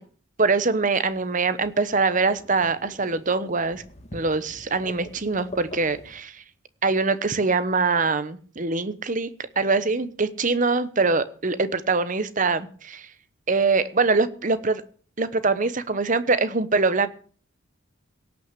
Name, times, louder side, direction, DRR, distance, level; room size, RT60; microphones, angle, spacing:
voice 1, 0.4-3.8 4.1-6.4 6.8-9.3 9.6-13.1 13.5-14.8 15.2-17.1, right 4 dB, 40° right, 13 dB, 1.0 m, -23 dB
sound 1, 0.9-6.2, left 1 dB, 35° left, 1.8 m, -44 dB
17.5 x 6.1 x 8.3 m, 0.44 s
head